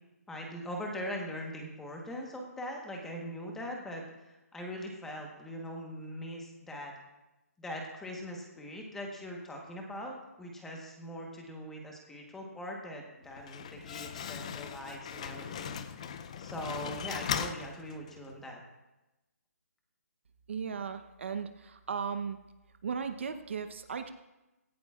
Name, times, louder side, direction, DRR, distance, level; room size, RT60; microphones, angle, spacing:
voice 1, 0.3-6.9 7.6-15.8 16.4-18.6, equal, 5° left, 0 dB, 1.2 m, -41 dB
Slam, 13.2-18.3, left 8 dB, 25° left, 0.5 m, -39 dB
voice 2, 20.5-22.4 22.8-24.1, right 6 dB, 45° right, 8 dB, 0.9 m, -36 dB
17.0 x 15.5 x 2.4 m, 1.0 s
hypercardioid pair, 170°, 9 cm